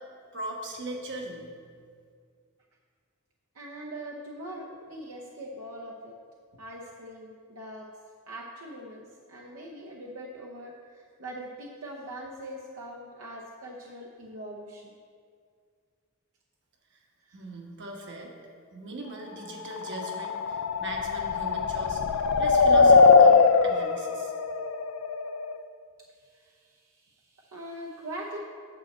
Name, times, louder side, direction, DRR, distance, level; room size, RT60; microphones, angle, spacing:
voice 1, 0.3-1.5 17.3-18.3 18.7-24.3, right 2 dB, 55° right, 1 dB, 1.3 m, -39 dB
voice 2, 3.5-6.2 6.5-7.9 8.3-14.9 17.2-17.4 26.1-28.4, right 1 dB, 75° right, -2 dB, 0.8 m, -42 dB
sound 1, 19.8-25.6, left 4 dB, 70° left, 0.4 m, -21 dB
9.4 x 4.2 x 7.2 m, 2.1 s
head